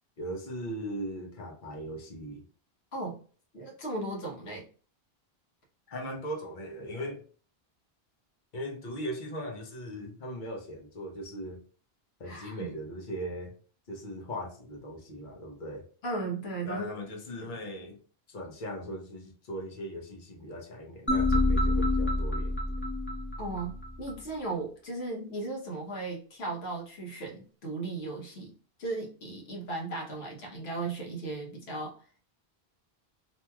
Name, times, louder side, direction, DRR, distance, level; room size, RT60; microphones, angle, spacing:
voice 1, 0.2-2.4 5.9-7.2 8.5-11.6 12.2-13.5 13.9-15.8 16.7-18.0 18.3-22.6, equal, 55° left, 1 dB, 0.9 m, -39 dB
voice 2, 3.5-4.6 12.2-12.7 16.0-16.9 17.4-17.5 23.4-28.5 28.8-31.9, right 2 dB, 75° left, -1 dB, 1.2 m, -36 dB
sound 1, 21.1-24.1, left 2 dB, 15° left, 0.6 m, -27 dB
3.0 x 2.6 x 2.2 m, 0.41 s
omnidirectional pair, 1.1 m